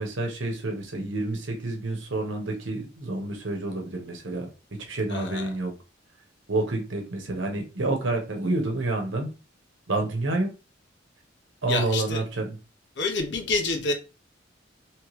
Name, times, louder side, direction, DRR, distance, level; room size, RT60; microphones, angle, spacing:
voice 1, 0.0-5.7 6.5-9.3 9.9-10.5 11.6-12.6, right 2 dB, 80° right, 1.0 m, -29 dB
voice 2, 5.1-5.5 11.7-12.2 13.0-13.9, left 3 dB, 60° left, 0.8 m, -27 dB
3.2 x 3.1 x 3.1 m
head